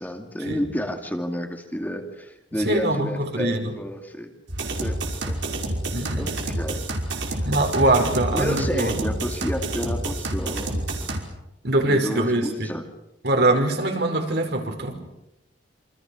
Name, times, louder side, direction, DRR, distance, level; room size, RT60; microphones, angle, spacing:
voice 1, 0.0-4.3 4.8-5.0 5.3-5.4 6.2-6.8 8.3-11.2 11.9-12.8, equal, 10° left, 4 dB, 2.5 m, -30 dB
voice 2, 2.7-3.7 5.9-6.3 7.4-9.0 11.6-12.7 13.2-15.0, right 2 dB, 60° right, 3 dB, 5.5 m, -22 dB
sound 1, 4.5-11.2, right 1 dB, 80° right, 5.5 m, -28 dB
28.0 x 27.0 x 6.5 m, 0.87 s
head